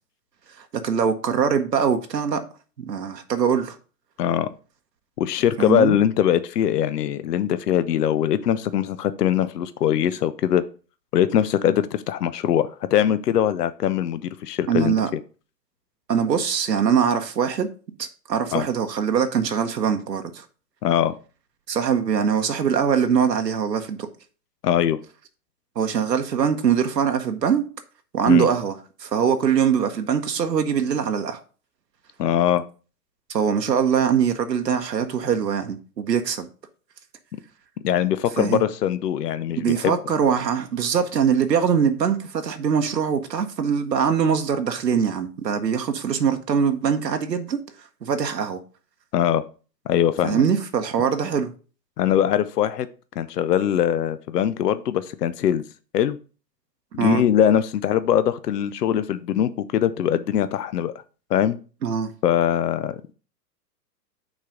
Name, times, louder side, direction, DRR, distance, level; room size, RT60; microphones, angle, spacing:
voice 1, 0.6-2.4 2.9-3.8 5.6-6.0 14.7-15.1 16.1-17.7 18.0-20.4 21.7-24.1 25.8-27.6 28.1-31.4 33.3-36.5 38.4-38.6 39.6-47.6 48.0-48.6 50.2-51.5 57.0-57.2 61.8-62.1, right 7 dB, 80° right, 1.0 m, -22 dB
voice 2, 4.2-4.5 5.2-10.6 11.1-15.2 18.5-18.7 20.8-21.2 24.6-25.0 28.3-28.5 32.2-32.6 37.8-40.0 49.1-49.4 49.9-50.4 52.0-52.9 53.2-55.6 55.9-56.2 56.9-60.9 61.3-61.6 62.2-63.1, left 10 dB, 70° left, 0.6 m, -22 dB
6.1 x 4.1 x 4.9 m
figure-of-eight pair, 110°, 49 cm